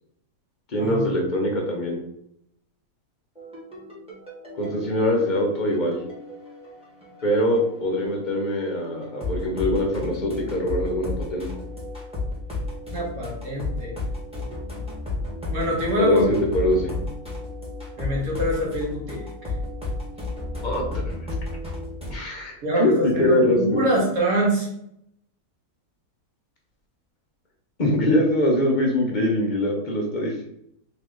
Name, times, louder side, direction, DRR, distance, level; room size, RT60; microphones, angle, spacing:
voice 1, 0.7-2.0 4.6-6.0 7.2-11.6 16.0-16.9 20.6-20.8 22.1-23.8 27.8-30.4, left 1 dB, 40° left, 0 dB, 0.7 m, -23 dB
sound 1, 3.4-22.1, left 2 dB, 5° right, 1.1 m, -33 dB
voice 2, 12.9-13.9 15.5-16.3 18.0-19.5 22.6-24.7, right 1 dB, 65° right, -3 dB, 1.8 m, -25 dB
3.6 x 3.0 x 3.7 m, 0.74 s
omnidirectional pair, 1.6 m